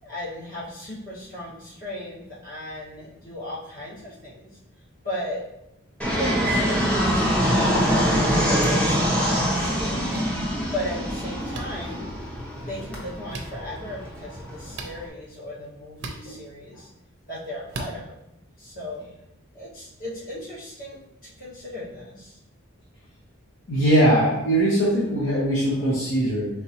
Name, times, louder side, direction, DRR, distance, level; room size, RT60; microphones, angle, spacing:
voice 1, 0.0-4.5 5.0-5.5 6.2-10.1 10.7-12.1 12.6-16.9 17.3-18.2 18.6-19.1 19.5-22.4, left 1 dB, 40° left, -8 dB, 1.6 m, -36 dB
Fixed-wing aircraft airplane, 6.0-15.0, equal, 5° left, 0.6 m, -24 dB
sound 1, 8.6-8.8 10.1-10.2 11.5-11.7 13.3-13.5 14.7-15.0 16.0-16.2 17.7-17.9, right 3 dB, 55° right, 0.5 m, -36 dB
voice 2, 23.7-26.5, right 1 dB, 65° left, -7 dB, 1.1 m, -21 dB
4.6 x 3.4 x 2.9 m, 0.84 s
head